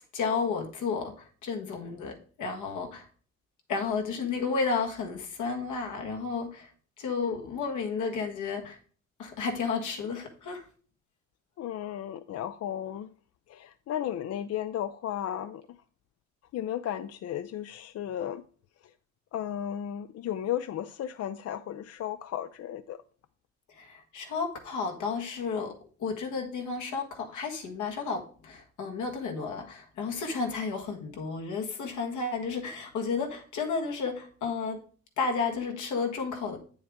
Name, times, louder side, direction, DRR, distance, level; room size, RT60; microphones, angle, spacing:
voice 1, 0.1-3.1 3.7-6.7 7.0-8.8 9.2-10.7 23.7-34.8 35.2-36.6, left 5 dB, 80° left, 1.6 m, -32 dB
voice 2, 11.6-13.1 13.5-15.6 16.5-18.4 19.3-23.0, left 10 dB, 55° left, 0.4 m, -34 dB
8.3 x 7.1 x 3.6 m
cardioid pair, 90°, 30 cm